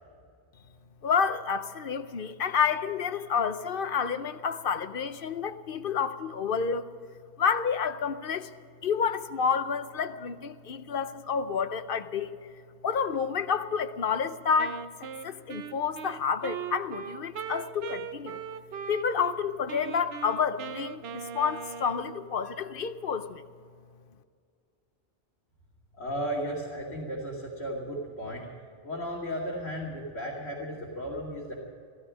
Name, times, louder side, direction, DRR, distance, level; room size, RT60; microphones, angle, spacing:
voice 1, 1.0-6.9 7.4-8.5 8.8-12.3 12.8-18.4 18.9-23.4, left 6 dB, 60° left, 11 dB, 0.9 m, -29 dB
Wind instrument woodwind instrument, 14.6-19.4 19.7-22.3, right 8 dB, 75° right, 1.0 m, -39 dB
voice 2, 26.0-28.5 28.8-31.5, equal, 85° left, -5 dB, 2.8 m, -35 dB
15.5 x 15.0 x 6.2 m, 2.2 s
omnidirectional pair, 1.1 m